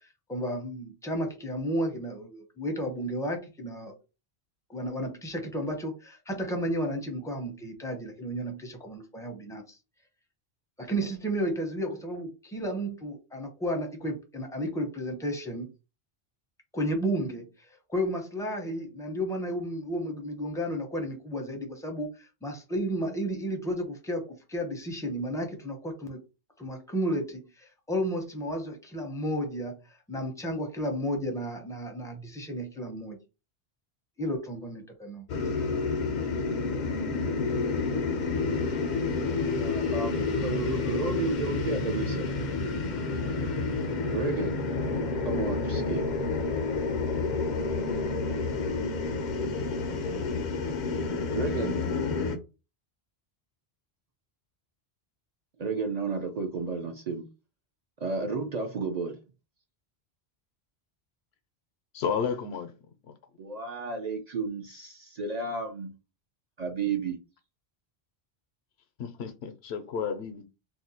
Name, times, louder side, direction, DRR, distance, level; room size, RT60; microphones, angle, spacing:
voice 1, 0.3-3.9 4.7-9.8 10.8-15.7 16.7-26.2 26.6-29.8 30.1-33.2 34.2-35.6, equal, 5° left, 0.5 m, -33 dB
sound 1, 35.3-52.4, left 3 dB, 55° left, 0.5 m, -29 dB
voice 2, 39.6-42.3 44.1-44.5 45.2-46.0 51.3-51.8 55.6-57.3 58.0-59.2 63.4-65.9 66.6-67.2, right 4 dB, 50° right, 0.6 m, -32 dB
voice 3, 61.9-63.1 69.0-70.5, left 6 dB, 80° left, 0.8 m, -32 dB
2.6 x 2.1 x 4.0 m
omnidirectional pair, 1.1 m